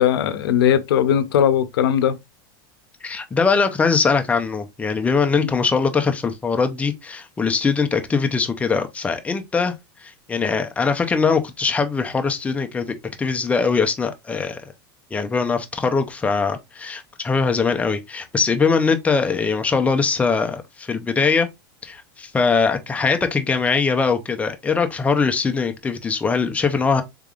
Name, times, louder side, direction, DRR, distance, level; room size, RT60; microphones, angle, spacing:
voice 1, 0.0-2.2 5.4-5.5, left 9 dB, 90° left, 0.6 m, -19 dB
voice 2, 3.0-9.7 10.0-14.6 15.1-21.5 21.8-27.0, left 5 dB, 10° left, 0.5 m, -21 dB
3.7 x 3.5 x 2.3 m
supercardioid pair, 145°, 12 cm